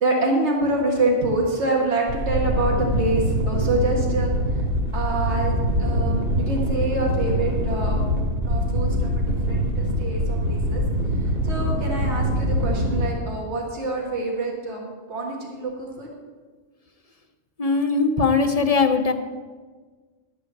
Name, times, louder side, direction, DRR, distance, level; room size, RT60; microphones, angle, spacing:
voice 1, 0.0-4.6 4.9-8.1 8.4-10.8 11.2-16.1, right 2 dB, 65° right, -2 dB, 2.1 m, -26 dB
sound 1, 2.1-13.1, equal, 30° right, 1.9 m, -24 dB
voice 2, 17.6-19.1, left 4 dB, 40° left, 6 dB, 0.7 m, -20 dB
12.0 x 5.0 x 8.5 m, 1.4 s
omnidirectional pair, 1.3 m